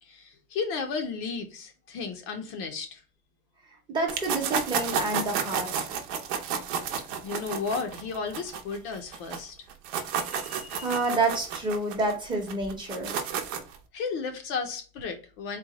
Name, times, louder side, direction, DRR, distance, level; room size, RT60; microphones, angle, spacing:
voice 1, 0.0-3.0 7.2-9.6 10.1-11.0 13.4-13.5 13.9-15.6, left 5 dB, 45° left, 0.5 m, -34 dB
voice 2, 3.9-5.9 10.8-13.1, right 2 dB, 15° right, 0.8 m, -28 dB
sound 1, 4.1-9.4 9.7-13.8, right 7 dB, 85° right, 0.8 m, -31 dB
4.0 x 2.2 x 3.8 m
cardioid pair, 180°, 32 cm